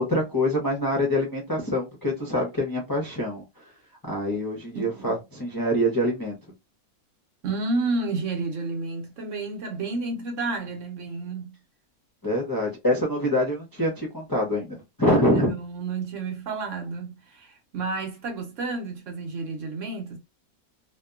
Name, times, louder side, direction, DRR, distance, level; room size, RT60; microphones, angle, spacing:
voice 1, 0.0-3.6 4.0-6.4 12.2-15.5, equal, 30° left, 0.4 m, -25 dB
voice 2, 4.7-5.1 7.4-11.6 15.3-20.2, right 3 dB, 60° right, 1.0 m, -31 dB
2.8 x 2.2 x 2.3 m
omnidirectional pair, 1.6 m